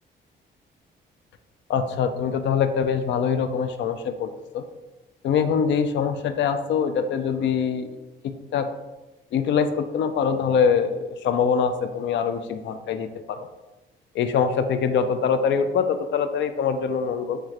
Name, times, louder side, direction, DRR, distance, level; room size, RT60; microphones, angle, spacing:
voice 1, 1.7-4.7 5.2-7.9 8.2-8.7 9.3-13.5 14.1-17.4, left 6 dB, 65° left, 9 dB, 0.4 m, -24 dB
3.3 x 3.2 x 3.6 m, 1.1 s
cardioid pair, 90°, 20 cm